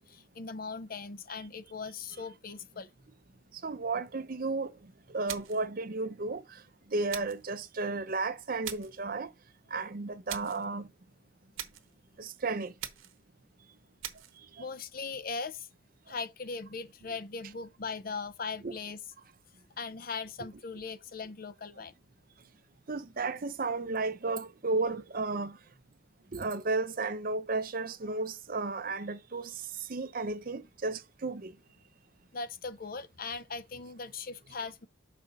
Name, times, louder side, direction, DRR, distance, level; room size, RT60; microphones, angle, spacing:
voice 1, 0.0-2.9 14.6-15.7 16.1-19.0 19.8-21.9 32.3-34.9, left 4 dB, 45° left, 0.6 m, -39 dB
voice 2, 3.6-4.7 5.1-6.4 6.9-9.3 9.7-10.9 12.2-12.7 18.6-18.7 22.9-25.6 26.3-29.6 29.9-31.5, right 3 dB, 45° right, 0.6 m, -33 dB
sound 1, 5.3-5.7 7.1-7.5 8.6-9.0 10.3-10.7 11.6-11.9 12.8-13.2 14.0-14.4, right 11 dB, 75° right, 1.0 m, -41 dB
6.6 x 5.5 x 4.0 m
head